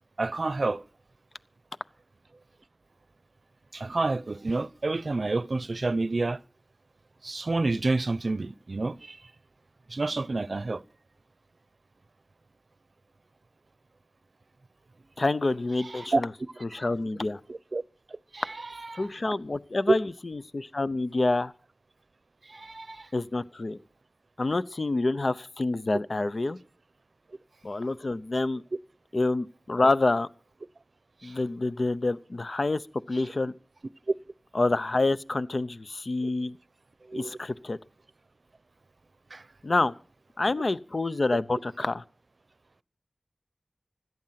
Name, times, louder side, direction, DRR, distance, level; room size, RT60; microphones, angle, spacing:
voice 1, 0.2-0.8 3.7-6.4 7.2-9.2 9.9-10.8 15.9-16.2 17.5-17.8 18.3-18.6 18.8-19.1 19.9-20.0 22.5-23.1 31.2-31.3 37.1-37.3 39.3-39.4, right 3 dB, 60° right, 0.6 m, -28 dB
voice 2, 15.2-16.3 16.6-17.4 18.9-21.5 23.1-23.8 24.4-26.6 27.6-28.6 29.1-30.3 31.2-32.8 33.1-33.5 34.5-36.6 37.1-37.8 39.6-40.0 40.4-42.0, left 2 dB, 60° left, 0.7 m, -27 dB
16.5 x 12.5 x 5.8 m
wide cardioid pair, 55°, 0 cm